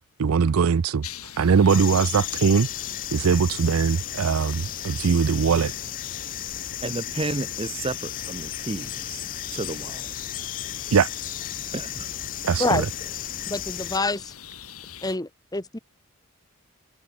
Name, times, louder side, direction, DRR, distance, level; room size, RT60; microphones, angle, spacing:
voice 1, 0.2-1.0 1.4-2.7 3.1-5.7 10.9-11.1 12.4-12.8, right 6 dB, 80° right, 0.5 m, -21 dB
sound 1, 1.0-15.2, left 9 dB, 90° left, 6.0 m, -43 dB
sound 2, 1.7-14.0, left 11 dB, 40° left, 0.7 m, -34 dB
voice 2, 6.8-9.2 9.5-10.1 11.7-12.1, right 3 dB, 25° right, 0.5 m, -32 dB
voice 3, 12.6-13.1 13.5-14.3 15.0-15.8, left 2 dB, 15° left, 1.2 m, -27 dB
head